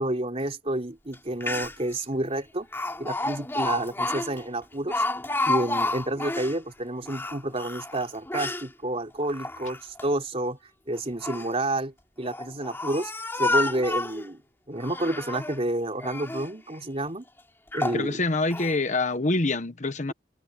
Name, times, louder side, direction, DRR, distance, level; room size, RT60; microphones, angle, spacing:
voice 1, 0.0-2.7 3.0-5.0 5.4-10.6 10.9-13.1 13.4-14.4 14.7-17.3 17.7-18.2, right 1 dB, 35° right, 3.6 m, -29 dB
Speech, 1.1-1.2 1.4-1.9 2.7-6.6 7.0-8.7 9.2-10.0 11.0-11.5 12.2-14.3 14.8-15.6 16.0-16.5 17.1-17.2 17.7-18.0 18.5-18.7, left 2 dB, 15° left, 3.1 m, -30 dB
voice 2, 17.9-20.1, left 2 dB, 45° left, 1.1 m, -26 dB
head